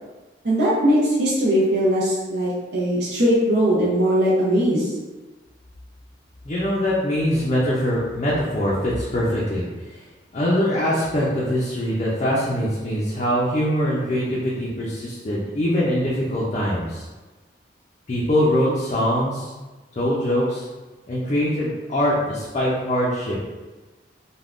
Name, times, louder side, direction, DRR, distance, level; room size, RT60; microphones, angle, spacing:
voice 1, 0.4-4.9, equal, 70° right, -8 dB, 0.6 m, -20 dB
voice 2, 6.4-10.0 10.3-17.0 18.1-19.5 19.9-20.7 21.1-23.4, equal, 40° left, -7 dB, 0.4 m, -23 dB
3.4 x 2.2 x 2.4 m, 1.2 s
head